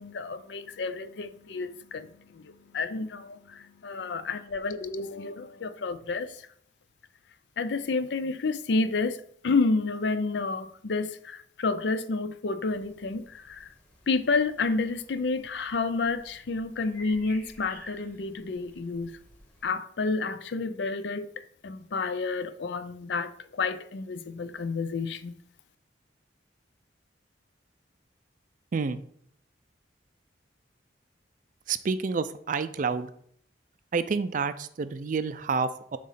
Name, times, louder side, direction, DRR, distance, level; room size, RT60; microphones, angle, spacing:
voice 1, 0.0-6.4 7.6-13.7 14.1-19.1 19.6-21.3 21.6-25.3, left 3 dB, 65° left, 0.5 m, -30 dB
sound 1, 12.6-19.6, left 1 dB, 10° left, 1.2 m, -53 dB
voice 2, 28.7-29.0 31.7-33.1 33.9-36.0, right 5 dB, 45° right, 0.4 m, -29 dB
7.5 x 3.1 x 5.6 m
head